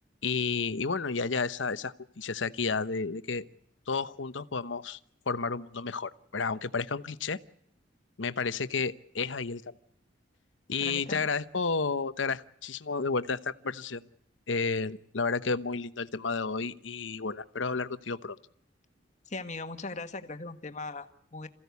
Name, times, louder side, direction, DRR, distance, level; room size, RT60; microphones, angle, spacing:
voice 1, 0.2-3.4 3.9-5.0 5.3-7.4 8.2-9.7 10.7-14.1 14.5-18.4, left 4 dB, 80° left, 13 dB, 1.0 m, -31 dB
voice 2, 10.8-11.3 19.3-21.5, left 3 dB, 40° left, 8 dB, 1.6 m, -39 dB
27.5 x 15.5 x 8.3 m, 0.73 s
head